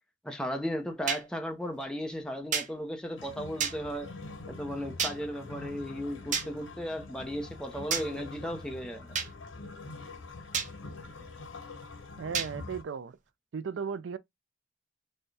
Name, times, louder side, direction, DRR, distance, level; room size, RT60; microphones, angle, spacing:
voice 1, 0.2-4.1 4.5-9.2, equal, 5° left, 0.6 m, -35 dB
sound 1, 1.1-1.2 2.5-2.7 3.6-3.8 5.0-5.2 6.3-6.5 7.9-8.1 9.1-9.3 10.5-10.7 12.3-12.5, right 6 dB, 40° right, 0.7 m, -29 dB
sound 2, 3.2-12.8, left 3 dB, 85° left, 0.8 m, -45 dB
voice 2, 12.2-13.2 13.5-14.2, right 6 dB, 70° right, 0.4 m, -36 dB
4.2 x 2.2 x 3.2 m
head